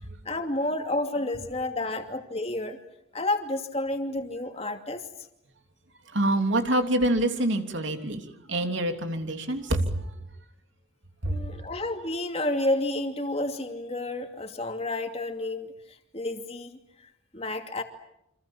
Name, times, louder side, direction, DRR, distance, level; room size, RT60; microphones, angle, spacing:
voice 1, 0.2-2.8 3.1-5.1 11.3-17.8, left 2 dB, 30° left, 5 dB, 2.7 m, -30 dB
voice 2, 6.1-10.2 11.2-11.7, right 1 dB, 65° right, 5 dB, 3.2 m, -26 dB
28.5 x 27.0 x 7.3 m, 0.81 s
head